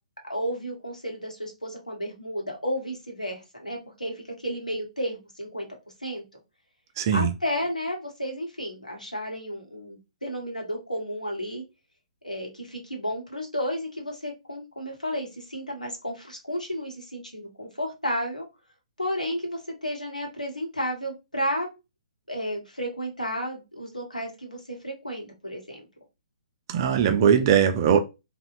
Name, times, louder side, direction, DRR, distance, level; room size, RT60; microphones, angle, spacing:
voice 1, 0.3-5.7 6.0-6.4 7.1-11.6 12.2-18.4 19.0-21.7 22.3-25.9, equal, 85° left, 0.9 m, -32 dB
voice 2, 7.0-7.3 26.7-28.0, right 8 dB, 35° right, 0.4 m, -20 dB
2.8 x 2.1 x 2.5 m
figure-of-eight pair, 130°, 4 cm